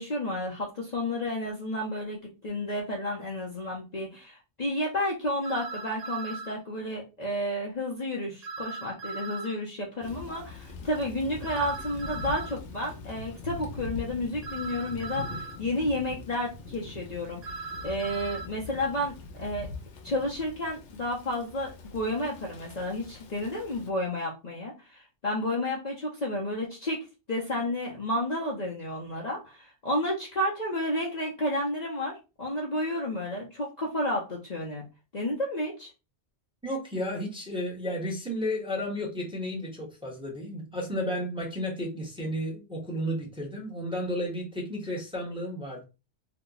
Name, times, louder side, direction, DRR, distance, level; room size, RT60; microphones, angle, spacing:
voice 1, 0.0-19.7 20.0-34.8 35.1-35.9, left 1 dB, 45° left, -3 dB, 0.7 m, -31 dB
sound 1, 5.4-6.6 8.4-9.6 11.4-12.6 14.4-15.6 17.4-18.5, right 4 dB, 45° right, 0.6 m, -38 dB
Thunder / Rain, 10.0-23.9, left 3 dB, 90° left, 1.0 m, -43 dB
voice 2, 36.6-45.8, equal, 5° right, -1 dB, 0.9 m, -33 dB
2.8 x 2.2 x 3.8 m, 0.29 s
omnidirectional pair, 1.1 m